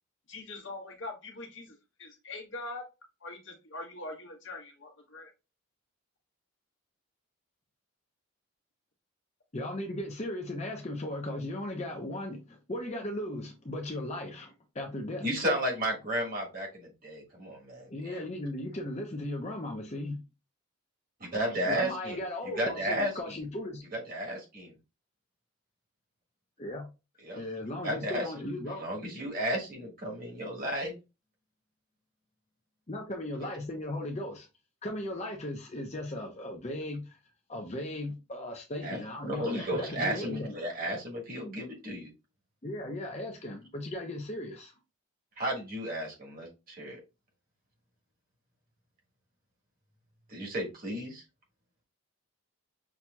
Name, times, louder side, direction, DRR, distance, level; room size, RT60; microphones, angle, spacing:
voice 1, 0.3-2.8 3.2-5.3, left 2 dB, 60° left, 1.1 m, -43 dB
voice 2, 9.5-15.3 17.9-20.2 21.6-23.8 26.6-26.9 27.3-28.9 32.9-34.5 34.8-37.2 37.5-40.5 42.6-44.7, left 1 dB, 30° left, 0.6 m, -37 dB
voice 3, 15.2-18.2 21.3-22.2 22.6-23.4 23.9-24.7 27.2-27.4 27.8-28.3 28.8-31.0 38.8-39.0 39.2-42.1 45.4-47.0 50.3-51.2, equal, 40° right, 1.6 m, -33 dB
5.9 x 2.8 x 2.2 m
head